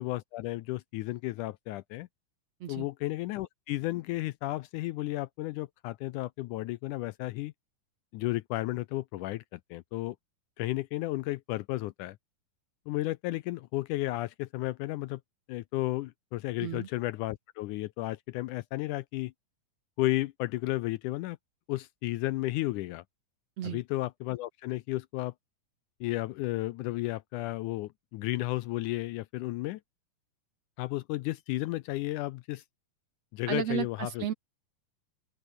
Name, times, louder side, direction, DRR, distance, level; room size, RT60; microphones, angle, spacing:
voice 1, 0.0-2.1 2.7-7.5 8.1-10.2 10.6-12.2 12.9-15.2 15.5-19.3 20.0-21.4 21.7-23.0 23.6-25.3 26.0-29.8 30.8-32.6 33.3-34.3, left 17 dB, 80° left, 1.9 m, -33 dB
voice 2, 16.6-16.9 23.6-23.8 33.5-34.3, right 10 dB, 60° right, 2.0 m, -33 dB
open air
omnidirectional pair, 3.9 m